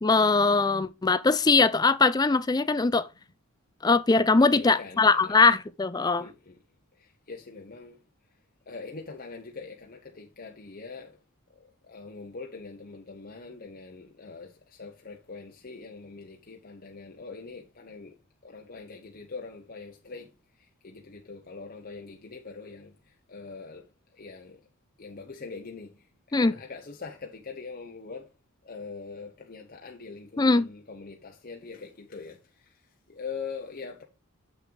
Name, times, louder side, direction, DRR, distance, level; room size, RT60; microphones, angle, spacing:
voice 1, 0.0-3.1 3.8-6.3 26.3-26.5 30.4-30.7, left 3 dB, 20° left, 0.4 m, -21 dB
voice 2, 4.5-5.4 6.2-6.6 7.3-8.0 8.7-11.1 11.9-18.1 18.4-20.3 20.8-22.9 23.3-23.8 24.2-24.6 25.0-25.9 26.4-28.3 28.6-32.4 33.1-34.0, left 4 dB, 40° left, 0.8 m, -42 dB
7.6 x 5.9 x 3.8 m
head